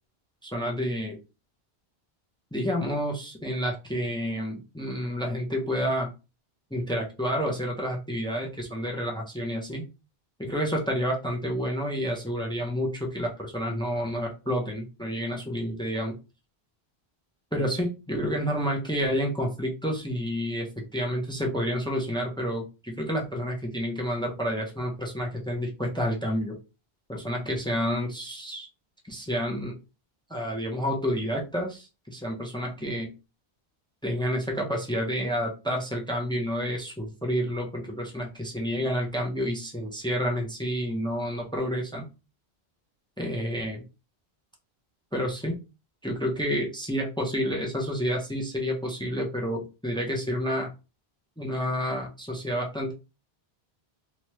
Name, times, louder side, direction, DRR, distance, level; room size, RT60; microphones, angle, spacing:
voice 1, 0.4-1.2 2.5-6.1 6.7-9.8 10.4-16.1 17.5-26.6 27.1-28.7 29.1-29.7 30.3-33.1 34.0-42.1 43.2-43.8 45.1-45.6 46.0-50.7 51.4-52.9, equal, 5° left, 0 dB, 0.4 m, -29 dB
2.9 x 2.2 x 3.0 m, 0.30 s
omnidirectional pair, 1.1 m